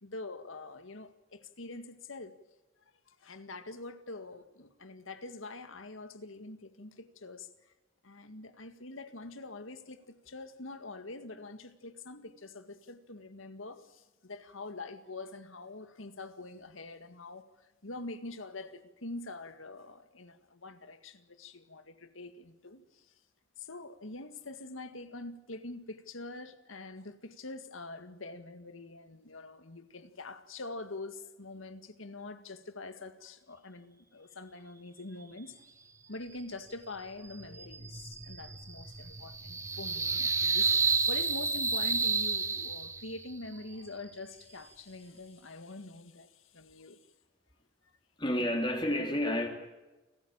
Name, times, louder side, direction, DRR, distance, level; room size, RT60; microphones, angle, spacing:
voice 1, 0.0-2.3 3.1-7.7 8.0-23.1 23.6-35.5 36.1-47.0, left 2 dB, 85° left, 1.9 m, -45 dB
sound 1, 37.2-43.2, right 4 dB, 15° right, 1.0 m, -31 dB
voice 2, 48.2-49.5, left 1 dB, 25° left, 3.0 m, -30 dB
29.0 x 15.0 x 8.8 m
head